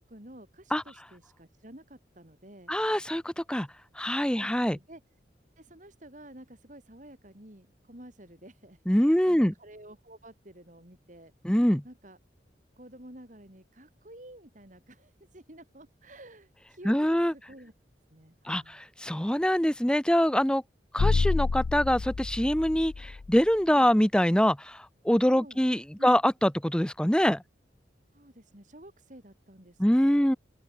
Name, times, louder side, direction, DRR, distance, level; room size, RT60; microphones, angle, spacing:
voice 1, 0.0-2.7 4.3-5.0 5.6-11.3 11.8-12.2 12.8-17.7 18.1-18.8 25.3-25.7 26.0-26.2 28.1-30.3, right 1 dB, 45° right, 5.2 m, -51 dB
voice 2, 2.7-3.7 4.0-4.8 8.9-9.5 11.4-11.8 16.8-17.3 18.5-20.6 20.9-27.4 29.8-30.4, equal, 5° left, 0.9 m, -24 dB
sound 1, 21.0-23.4, left 4 dB, 55° left, 0.4 m, -28 dB
open air
head